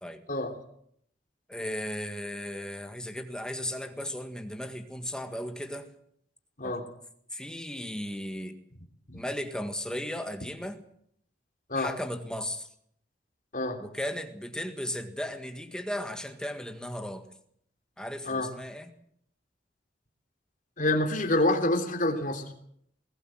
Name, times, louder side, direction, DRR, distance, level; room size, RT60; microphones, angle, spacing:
voice 1, 1.5-5.9 6.6-6.8 7.3-8.6 9.1-10.8 11.8-12.7 13.8-17.2 18.0-18.9, left 1 dB, 5° left, 7 dB, 1.7 m, -36 dB
voice 2, 20.8-22.4, left 1 dB, 50° left, 3 dB, 3.4 m, -27 dB
21.5 x 17.0 x 7.8 m, 0.69 s
head